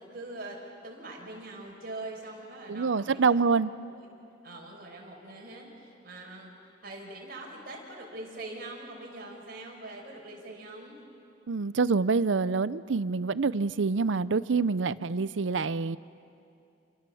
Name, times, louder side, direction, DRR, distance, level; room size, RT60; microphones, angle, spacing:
voice 1, 0.0-3.4 3.9-4.0 4.4-6.5 6.8-11.0, right 2 dB, 55° right, -1 dB, 6.0 m, -43 dB
voice 2, 2.7-3.7 11.5-16.0, right 4 dB, 85° right, 17 dB, 0.6 m, -26 dB
29.0 x 27.0 x 7.1 m, 2.6 s
head